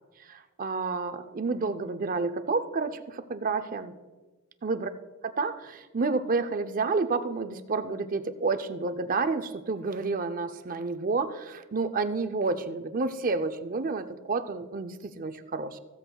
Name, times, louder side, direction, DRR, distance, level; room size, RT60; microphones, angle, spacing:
voice 1, 0.3-4.0 4.6-4.9 5.2-15.8, right 4 dB, 40° right, 10 dB, 0.5 m, -30 dB
15.5 x 13.5 x 2.3 m, 1.3 s
head